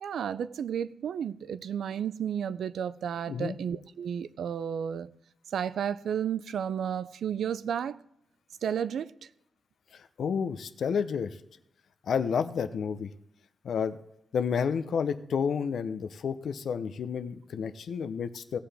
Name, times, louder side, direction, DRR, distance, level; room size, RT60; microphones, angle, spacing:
voice 1, 0.0-5.1 5.5-8.0 8.6-9.1, right 8 dB, 75° right, 0.4 m, -32 dB
voice 2, 9.9-11.4 12.1-13.1 13.6-14.0 14.3-18.6, left 6 dB, 65° left, 0.6 m, -30 dB
17.5 x 7.6 x 3.4 m
wide cardioid pair, 155°, 0 cm